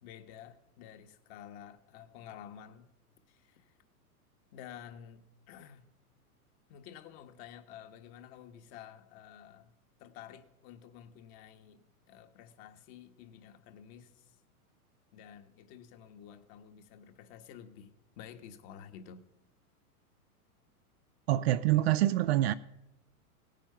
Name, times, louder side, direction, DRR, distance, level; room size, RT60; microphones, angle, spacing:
voice 1, 0.0-2.9 3.3-3.7 4.5-5.9 6.7-9.7 10.0-14.3 15.1-19.2, left 9 dB, 40° left, 1.5 m, -51 dB
voice 2, 21.3-22.5, right 14 dB, 45° right, 0.4 m, -26 dB
17.0 x 9.1 x 5.7 m
hypercardioid pair, 125°, 45 cm